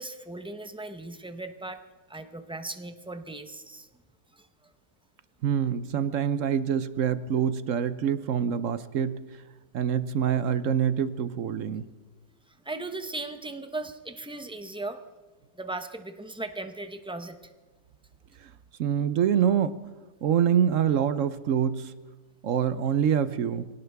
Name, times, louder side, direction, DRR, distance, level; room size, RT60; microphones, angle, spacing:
voice 1, 0.0-1.8 2.1-3.9 4.3-4.5 12.6-15.0 15.6-17.4, right 2 dB, 5° right, 8 dB, 0.4 m, -37 dB
voice 2, 5.4-9.2 9.7-11.8 18.4-18.5 18.8-19.7 20.2-21.9 22.4-23.7, right 8 dB, 60° right, 13 dB, 0.9 m, -25 dB
24.0 x 17.5 x 3.5 m, 1.3 s
omnidirectional pair, 1.7 m